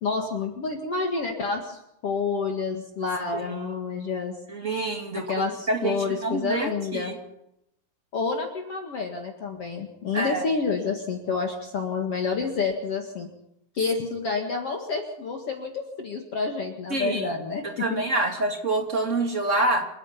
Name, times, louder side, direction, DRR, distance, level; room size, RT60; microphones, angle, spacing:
voice 1, 0.0-4.4 5.3-7.1 8.1-13.3 13.7-18.0 18.3-18.4, left 4 dB, 50° left, 2 dB, 2.7 m, -29 dB
voice 2, 3.3-3.7 4.5-7.2 10.1-10.4 16.9-17.3 17.6-19.9, right 2 dB, 25° right, 3 dB, 2.5 m, -27 dB
28.0 x 10.0 x 9.9 m, 0.84 s
omnidirectional pair, 3.9 m